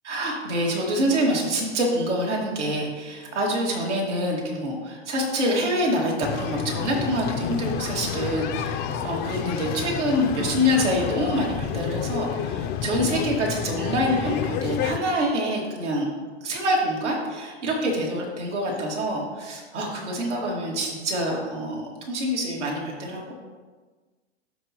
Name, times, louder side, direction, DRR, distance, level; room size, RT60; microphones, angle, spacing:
voice 1, 0.0-16.1 16.4-23.3, equal, 80° right, -2 dB, 2.3 m, -26 dB
sound 1, 6.2-15.0, left 8 dB, 30° left, 0.5 m, -30 dB
12.5 x 4.6 x 3.0 m, 1.4 s
hypercardioid pair, 110°, 35 cm